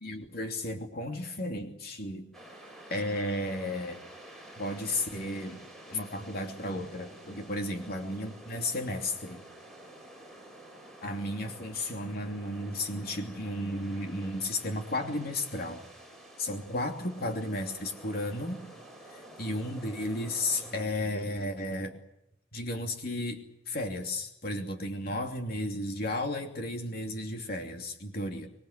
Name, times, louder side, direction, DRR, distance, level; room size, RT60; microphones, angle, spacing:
voice 1, 0.0-2.3 2.9-4.0 4.6-5.6 5.9-9.4 11.0-15.8 16.4-18.6 19.1-21.9 22.5-28.5, left 1 dB, 55° left, 4 dB, 2.9 m, -34 dB
sound 1, 2.3-20.8, right 1 dB, ahead, 6.5 m, -50 dB
26.5 x 21.5 x 8.1 m, 0.84 s
head